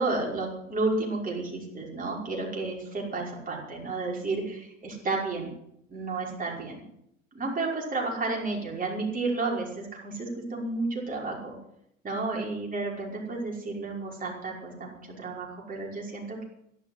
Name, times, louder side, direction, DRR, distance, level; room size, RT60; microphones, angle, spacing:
voice 1, 0.0-5.5 5.9-6.8 7.3-11.6 12.0-16.4, right 3 dB, 20° right, -1 dB, 5.3 m, -32 dB
12.0 x 11.5 x 8.1 m, 0.75 s
hypercardioid pair, 90°, 40 cm